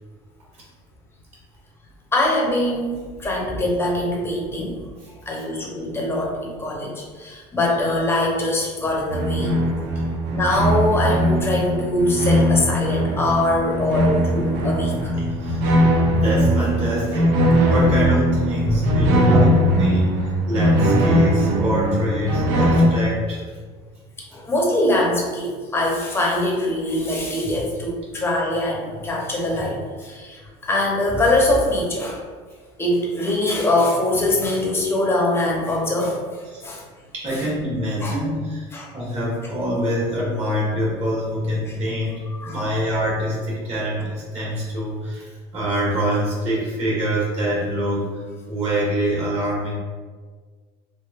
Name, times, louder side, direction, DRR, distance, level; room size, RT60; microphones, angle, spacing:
voice 1, 2.1-4.8 5.3-9.5 10.3-15.4 18.6-18.9 19.2-19.7 24.3-32.2 32.8-36.8 37.3-37.4 38.0-38.1 38.7-38.9 42.3-42.6, left 1 dB, 15° left, -2 dB, 0.7 m, -23 dB
sound 1, 9.1-22.9, equal, 85° right, 0.5 m, -20 dB
voice 2, 16.1-17.4 17.7-19.5 19.8-23.4 36.5-36.6 37.1-48.2 48.5-49.7, equal, 45° right, -6 dB, 1.5 m, -25 dB
3.4 x 2.4 x 2.3 m, 1.5 s
supercardioid pair, 110°, 15 cm